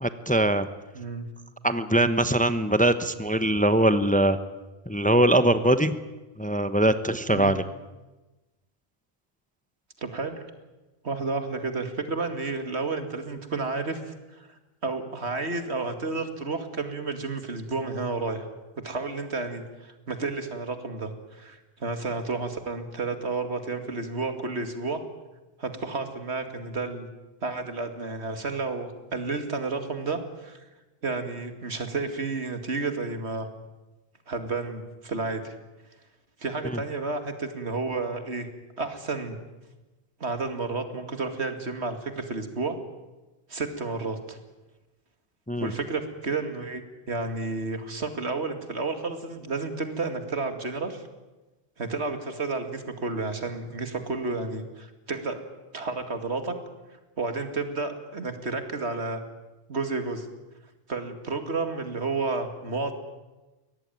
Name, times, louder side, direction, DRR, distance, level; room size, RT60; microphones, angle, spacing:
voice 1, 0.0-0.7 1.6-4.4 4.9-6.0 6.4-7.6 45.5-45.7, right 1 dB, 10° left, 11 dB, 0.9 m, -22 dB
voice 2, 0.9-1.3 7.3-7.5 10.0-10.4 11.0-18.5 18.8-25.0 25.6-27.1 27.4-30.6 31.0-33.5 34.3-35.5 36.4-38.5 38.8-39.4 40.2-42.8 43.5-44.4 45.6-46.8 47.1-51.0 51.8-55.4 55.7-56.5 57.2-59.2 59.7-60.3 60.9-62.9, right 3 dB, 80° right, 7 dB, 2.6 m, -31 dB
23.0 x 18.0 x 9.3 m, 1.1 s
omnidirectional pair, 1.1 m